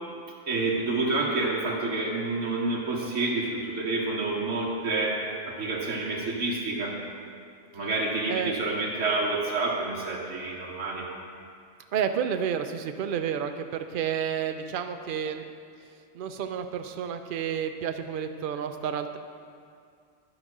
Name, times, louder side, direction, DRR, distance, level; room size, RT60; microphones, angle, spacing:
voice 1, 0.5-7.0 7.7-11.1, right 3 dB, 80° right, -3 dB, 1.3 m, -28 dB
voice 2, 8.3-8.6 11.9-15.5 16.1-19.2, right 8 dB, 55° right, 8 dB, 0.6 m, -30 dB
11.0 x 5.0 x 6.0 m, 2.3 s
omnidirectional pair, 1.2 m